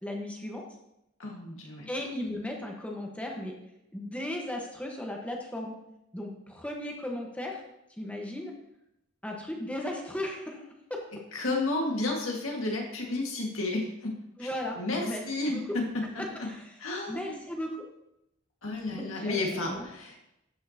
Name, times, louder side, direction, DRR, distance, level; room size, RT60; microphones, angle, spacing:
voice 1, 0.0-0.6 1.9-3.5 3.9-5.7 6.1-7.6 8.0-8.5 9.2-10.6 10.9-11.0 14.4-15.6 16.3-16.8 17.1-17.8 18.9-19.9, left 1 dB, 5° left, 0 dB, 1.3 m, -36 dB
voice 2, 1.2-1.9 11.3-14.1 14.4-14.5 14.8-16.0 16.4-16.5 16.8-17.4 18.6-20.2, left 2 dB, 85° left, 0 dB, 1.9 m, -32 dB
13.0 x 5.7 x 2.9 m, 0.84 s
head